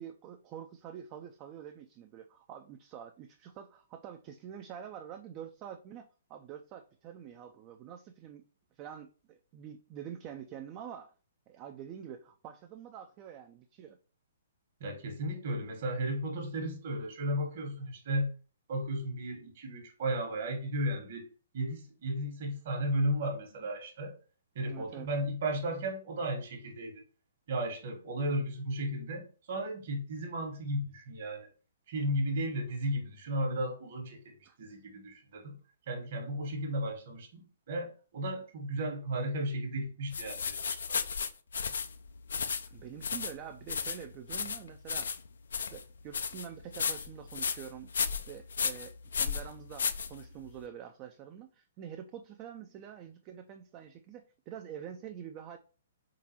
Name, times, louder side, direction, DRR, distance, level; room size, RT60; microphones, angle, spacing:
voice 1, 0.0-8.4 8.7-11.1 11.5-14.0 24.6-25.1 34.5-34.6 42.7-45.1 45.6-55.6, right 9 dB, 30° right, 0.3 m, -46 dB
voice 2, 14.8-18.3 18.7-21.3 21.5-24.1 24.5-27.0 27.5-31.5 31.9-35.6 35.9-41.0, right 1 dB, 55° right, 1.2 m, -34 dB
sound 1, 40.1-50.6, left 6 dB, 70° left, 0.3 m, -35 dB
3.8 x 3.7 x 2.9 m
figure-of-eight pair, 125°, 0 cm